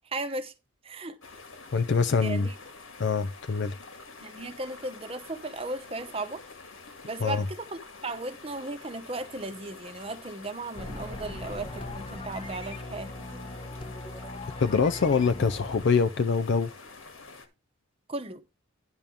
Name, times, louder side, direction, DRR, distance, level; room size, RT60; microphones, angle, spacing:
voice 1, 0.0-0.5 0.8-1.2 2.2-2.5 4.2-6.4 7.1-13.5 18.1-18.4, right 2 dB, 25° right, 0.9 m, -36 dB
sound 1, 1.2-17.5, left 3 dB, 80° left, 1.7 m, -47 dB
voice 2, 1.7-2.5 3.0-3.8 7.2-7.5 14.6-16.7, left 5 dB, 55° left, 0.4 m, -24 dB
sound 2, 10.8-15.8, left 2 dB, 25° left, 0.8 m, -39 dB
10.5 x 3.5 x 7.0 m
head